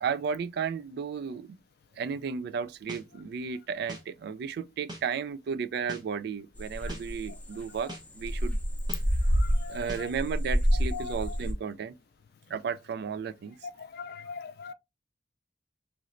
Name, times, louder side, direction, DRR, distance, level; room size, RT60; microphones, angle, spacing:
voice 1, 0.0-1.6 2.0-8.6 9.7-12.0 12.5-13.6, right 6 dB, 60° right, 0.3 m, -34 dB
sound 1, 2.9-3.0 3.9-4.0 4.9-5.0 5.9-6.0 6.9-7.0 7.9-8.0 8.9-9.0 9.9-10.0, right 1 dB, 25° right, 0.8 m, -40 dB
sound 2, 6.6-11.5, equal, 10° left, 0.7 m, -28 dB
voice 2, 9.4-10.1 10.9-11.4 13.8-14.7, left 6 dB, 60° left, 0.3 m, -41 dB
3.1 x 2.9 x 2.5 m
head